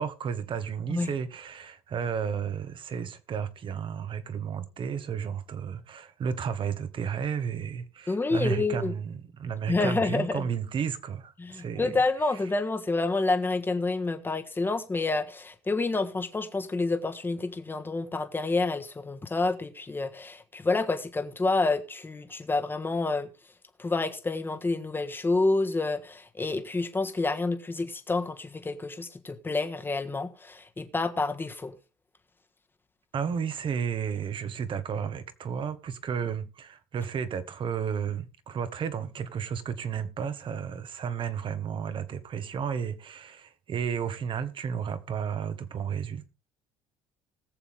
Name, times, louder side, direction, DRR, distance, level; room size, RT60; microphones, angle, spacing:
voice 1, 0.0-12.0 33.1-46.3, right 7 dB, 45° right, 1.5 m, -32 dB
voice 2, 8.1-8.9 9.7-10.5 11.4-23.3 23.8-31.7, left 3 dB, 15° left, 1.5 m, -28 dB
20.5 x 7.0 x 3.6 m
supercardioid pair, 100°, 12 cm